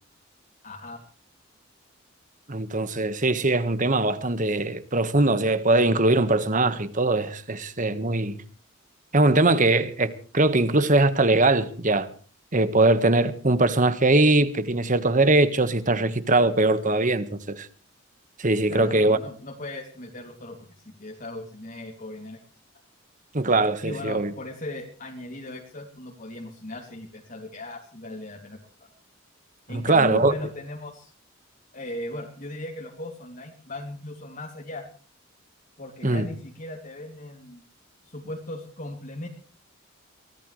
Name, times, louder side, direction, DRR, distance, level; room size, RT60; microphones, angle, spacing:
voice 1, 0.6-1.0 18.7-22.4 23.8-28.9 29.7-31.1 31.7-34.9 35.8-37.6 38.0-39.3, left 1 dB, 40° left, 2.8 m, -37 dB
voice 2, 2.5-8.4 9.1-12.1 12.5-17.7 18.4-19.2 23.3-24.3 29.7-30.3 36.0-36.3, right 2 dB, 40° right, 1.5 m, -21 dB
23.5 x 18.0 x 3.3 m
head